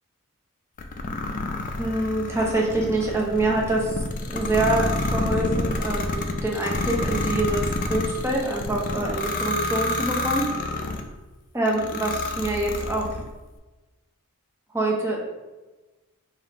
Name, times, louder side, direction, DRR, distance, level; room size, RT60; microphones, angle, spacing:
sound 1, 0.8-11.1 11.7-13.3, left 2 dB, 35° left, 0.4 m, -29 dB
voice 1, 1.8-4.0 4.3-10.5 11.5-13.1 14.7-15.2, right 2 dB, 10° right, -3 dB, 0.6 m, -25 dB
3.7 x 2.5 x 4.1 m, 1.2 s
head